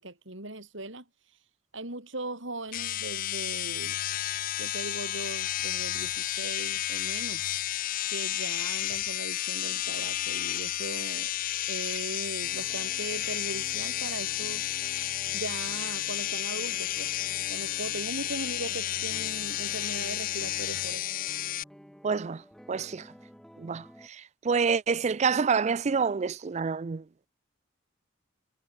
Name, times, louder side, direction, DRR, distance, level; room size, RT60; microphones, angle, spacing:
voice 1, 0.0-1.5 1.7-4.0 4.6-7.5 8.1-11.3 11.7-14.6 15.3-17.1 17.5-21.1, right 2 dB, 65° right, 6.3 m, -39 dB
sound 1, 2.7-21.6, left 13 dB, 40° left, 0.4 m, -32 dB
sound 2, 12.4-24.1, equal, ahead, 5.5 m, -52 dB
voice 2, 22.0-22.4 22.7-23.1 23.6-27.0, right 5 dB, 35° right, 0.4 m, -28 dB
head